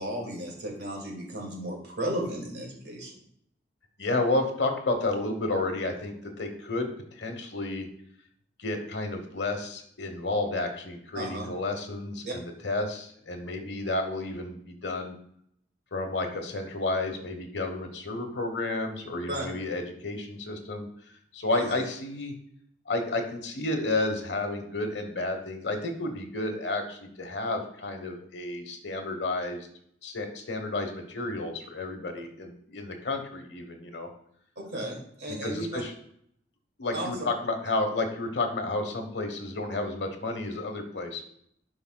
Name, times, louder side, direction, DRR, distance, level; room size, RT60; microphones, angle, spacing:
voice 1, 0.0-3.1 11.1-11.5 12.2-12.3 19.3-19.5 21.5-21.8 34.6-35.8 36.9-37.1, right 1 dB, 65° right, -1 dB, 2.2 m, -34 dB
voice 2, 4.0-7.9 8.6-15.2 15.9-22.3 22.9-29.7 30.0-34.1 35.4-35.9 36.8-41.2, left 2 dB, 70° left, 5 dB, 1.2 m, -31 dB
11.0 x 5.5 x 2.3 m, 0.68 s
head